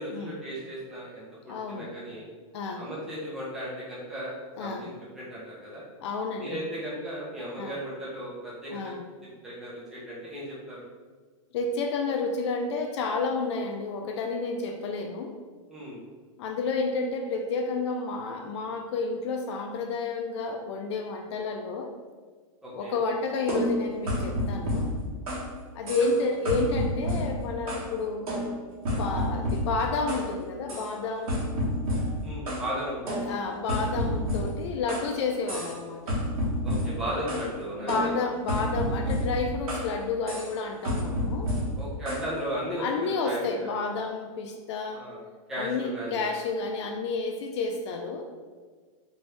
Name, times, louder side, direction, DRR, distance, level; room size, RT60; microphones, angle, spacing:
voice 1, 0.0-2.2 2.8-4.3 4.6-5.8 6.4-8.9 9.2-10.8 15.7-16.0 22.6-23.0 32.2-33.3 36.6-38.1 41.8-43.7 44.9-45.2 45.5-46.3, equal, ahead, -9 dB, 0.7 m, -36 dB
voice 2, 1.5-1.9 2.5-2.9 4.6-4.9 6.0-6.6 7.6-7.7 8.7-9.0 11.5-15.4 16.4-21.9 22.7-24.9 25.7-28.3 28.8-31.4 33.2-36.1 37.7-41.5 42.8-45.0 45.6-48.3, left 3 dB, 50° left, 4 dB, 0.4 m, -30 dB
sound 1, 23.5-25.5 25.9-26.2 26.5-27.9 28.3-30.3 30.7-30.9 31.3-32.7 33.1-35.1 35.5-35.8 36.1-37.5 37.9-39.9 40.3-40.5 40.8-42.3, equal, 70° right, 1.4 m, -30 dB
3.0 x 2.6 x 3.3 m, 1.5 s
hypercardioid pair, 150°, 18 cm